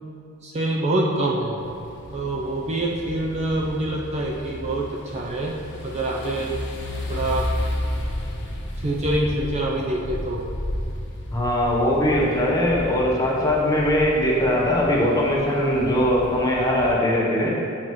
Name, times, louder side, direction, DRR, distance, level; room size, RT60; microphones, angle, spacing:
voice 1, 0.4-1.6 2.1-5.5 5.8-6.6 7.1-7.6 8.8-10.4, right 1 dB, 30° right, -2 dB, 0.5 m, -25 dB
sound 1, 1.6-16.9, left 1 dB, 55° left, 0.9 m, -33 dB
voice 2, 11.3-17.5, left 1 dB, 15° left, -4 dB, 1.0 m, -21 dB
8.8 x 5.5 x 3.1 m, 2.7 s
head